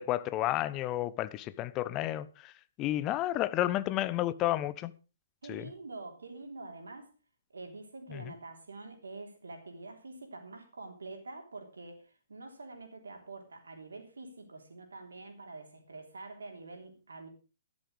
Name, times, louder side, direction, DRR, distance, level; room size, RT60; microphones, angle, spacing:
voice 1, 0.0-2.5 2.8-4.9 5.5-5.6 8.1-8.2, left 14 dB, 25° left, 0.7 m, -31 dB
voice 2, 5.4-7.1 7.5-17.3, right 3 dB, 65° right, 3.4 m, -46 dB
12.5 x 11.5 x 4.9 m
figure-of-eight pair, 120°, 0 cm